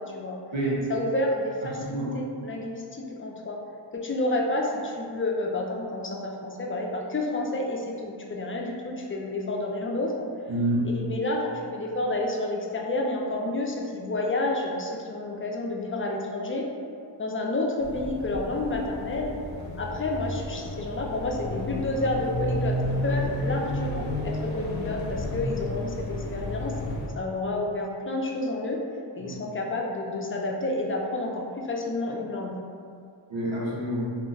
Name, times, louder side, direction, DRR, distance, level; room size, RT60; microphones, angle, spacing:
voice 1, 0.0-0.4 0.9-3.6 3.9-10.3 10.8-16.6 17.2-19.3 19.8-26.7 27.2-28.8 29.2-32.6, left 2 dB, 30° left, -1 dB, 0.4 m, -30 dB
voice 2, 1.7-2.1 10.5-10.9 29.2-29.4 33.3-34.2, right 1 dB, 85° right, -6 dB, 0.8 m, -28 dB
sound 1, 17.8-27.1, left 1 dB, 80° left, 0.5 m, -32 dB
2.4 x 2.0 x 3.7 m, 2.4 s
wide cardioid pair, 50°, 45 cm